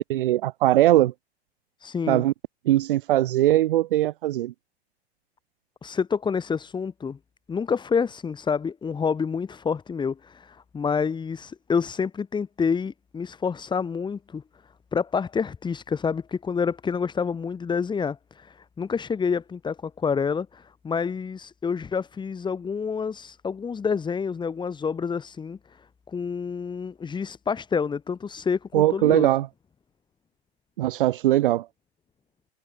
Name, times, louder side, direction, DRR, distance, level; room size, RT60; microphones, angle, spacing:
voice 1, 0.1-1.1 2.1-2.3 2.7-4.5 28.7-29.5 30.8-31.7, right 14 dB, 55° right, 1.0 m, -20 dB
voice 2, 1.8-2.2 5.8-7.2 7.5-14.4 14.9-25.6 26.1-29.3, left 6 dB, 15° left, 2.0 m, -28 dB
figure-of-eight pair, 95°, 32 cm